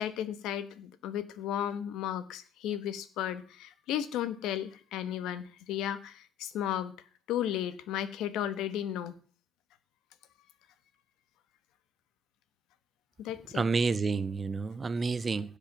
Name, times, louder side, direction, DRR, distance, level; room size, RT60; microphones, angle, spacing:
voice 1, 0.0-7.0 7.3-9.1 13.2-13.6, left 10 dB, 85° left, 1.1 m, -34 dB
voice 2, 13.5-15.6, right 4 dB, 30° right, 0.6 m, -29 dB
16.0 x 5.3 x 6.7 m
cardioid pair, 120°, 0 cm